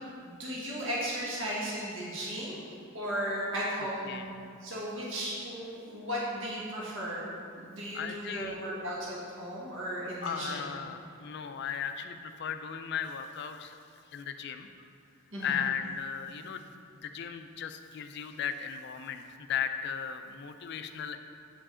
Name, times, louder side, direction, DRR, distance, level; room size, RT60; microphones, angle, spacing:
voice 1, 0.2-2.6 2.9-4.3 4.6-10.7 15.3-15.6, equal, 60° right, -6 dB, 1.2 m, -36 dB
voice 2, 3.8-4.3 7.9-8.6 10.2-13.8 14.1-14.7 15.4-16.7 16.9-19.2 19.5-21.2, left 7 dB, 50° left, 8 dB, 0.3 m, -36 dB
8.6 x 4.8 x 3.7 m, 2.4 s
head